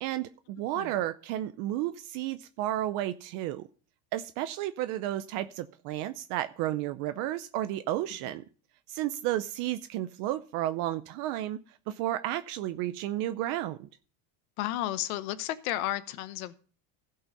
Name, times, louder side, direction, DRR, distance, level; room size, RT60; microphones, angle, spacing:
voice 1, 0.0-3.6 4.1-8.4 8.9-11.6 11.9-13.9, right 13 dB, 50° right, 0.6 m, -32 dB
voice 2, 14.6-16.6, left 14 dB, 85° left, 1.0 m, -32 dB
16.0 x 5.6 x 5.3 m
cardioid pair, 165°, 42 cm